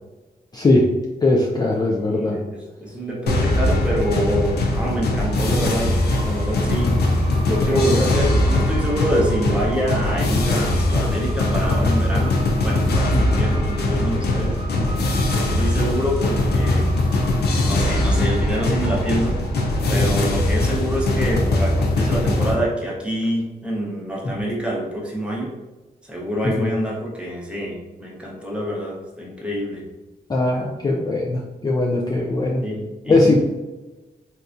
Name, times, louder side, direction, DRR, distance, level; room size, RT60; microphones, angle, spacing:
voice 1, 0.5-0.9 1.2-2.4 13.1-13.3 14.7-14.9 19.9-20.1 26.6-26.7 30.3-32.6 33.1-33.4, left 2 dB, 25° left, -2 dB, 0.4 m, -20 dB
voice 2, 1.9-7.0 7.5-12.4 12.6-14.6 15.3-16.9 17.6-19.4 19.9-25.5 26.0-29.8 32.6-33.4, equal, 5° right, -4 dB, 0.8 m, -26 dB
sound 1, 3.3-22.5, left 1 dB, 85° left, 0.5 m, -21 dB
sound 2, 5.2-21.0, right 2 dB, 40° right, 0.6 m, -38 dB
4.1 x 2.3 x 2.5 m, 1.1 s
wide cardioid pair, 120°, 16 cm